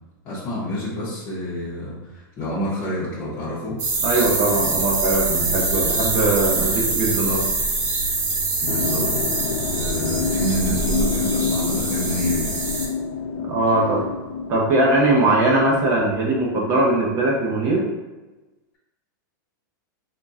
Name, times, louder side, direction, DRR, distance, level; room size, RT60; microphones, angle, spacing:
voice 1, 0.2-3.8 8.6-9.1 9.8-12.5, equal, 20° left, -10 dB, 0.7 m, -28 dB
sound 1, 3.8-12.9, right 3 dB, 50° right, 1.0 m, -24 dB
voice 2, 4.0-7.4 13.5-14.0 14.5-17.9, right 2 dB, 25° right, -2 dB, 0.7 m, -20 dB
sound 2, 8.7-16.2, left 6 dB, 65° left, 0.4 m, -28 dB
3.9 x 2.1 x 3.5 m, 1.1 s
supercardioid pair, 175°, 11 cm